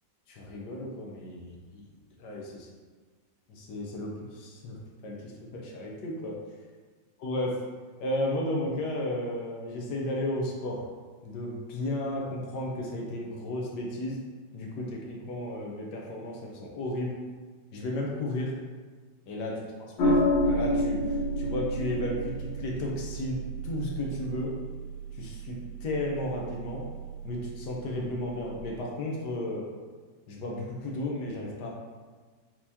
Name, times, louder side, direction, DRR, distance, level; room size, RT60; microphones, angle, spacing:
voice 1, 0.3-1.9 2.2-2.7 3.5-4.7 5.0-6.3 7.2-7.6 8.0-10.8 11.2-14.2 14.5-17.2 17.7-18.5 19.3-19.6 20.0-21.0 21.4-23.4 23.6-24.5 25.1-26.8 27.2-29.6 30.3-31.7, left 1 dB, 70° left, -2 dB, 1.4 m, -33 dB
sound 1, 20.0-28.5, equal, 85° left, 1.5 m, -31 dB
4.5 x 3.9 x 2.7 m, 1.5 s
omnidirectional pair, 1.9 m